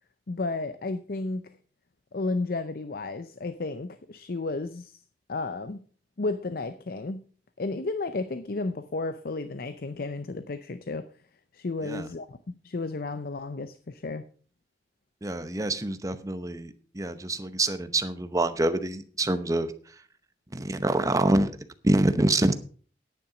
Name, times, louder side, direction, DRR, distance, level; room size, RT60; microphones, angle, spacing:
voice 1, 0.3-1.4 2.1-5.0 5.3-5.8 6.2-7.2 7.6-11.1 11.5-12.4 12.6-14.3, left 3 dB, 55° left, 0.6 m, -32 dB
voice 2, 15.2-19.7 20.5-21.5 21.8-22.5, right 2 dB, 20° right, 0.8 m, -26 dB
10.0 x 9.2 x 5.0 m
head